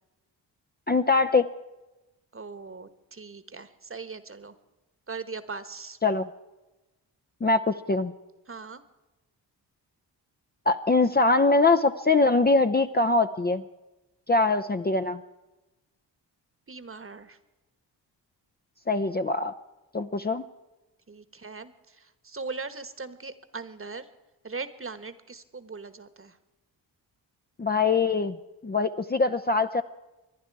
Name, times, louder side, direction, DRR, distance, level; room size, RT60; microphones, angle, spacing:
voice 1, 0.9-1.5 6.0-6.3 7.4-8.1 10.7-13.6 14.3-15.2 18.9-19.5 19.9-20.4 27.6-28.4 28.6-29.8, left 3 dB, 20° left, 8 dB, 0.6 m, -23 dB
voice 2, 2.3-4.6 5.1-6.0 8.5-8.8 16.7-17.4 21.1-24.1 24.4-26.4, right 4 dB, 30° right, 13 dB, 1.3 m, -40 dB
25.5 x 11.0 x 4.7 m, 1.0 s
cardioid pair, 55°, 44 cm